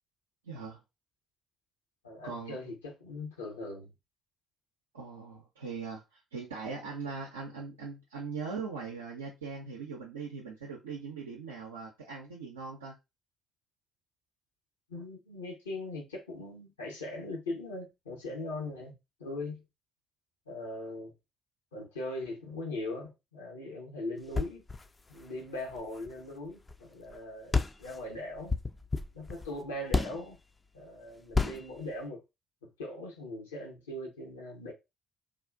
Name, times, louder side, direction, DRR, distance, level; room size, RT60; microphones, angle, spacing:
voice 1, 0.4-0.8 2.2-2.7 4.9-13.0, right 5 dB, 75° right, 0.5 m, -40 dB
voice 2, 2.0-3.9 14.9-18.9 19.2-19.6 20.5-21.1 21.7-24.6 25.1-28.5 29.1-30.4 30.7-32.2 32.6-34.7, left 2 dB, 80° left, 0.8 m, -40 dB
sound 1, 24.2-26.8 27.1-27.2 27.5-30.4 31.3-31.8, left 3 dB, 25° left, 0.3 m, -32 dB
3.5 x 2.4 x 2.4 m
figure-of-eight pair, 45°, 0 cm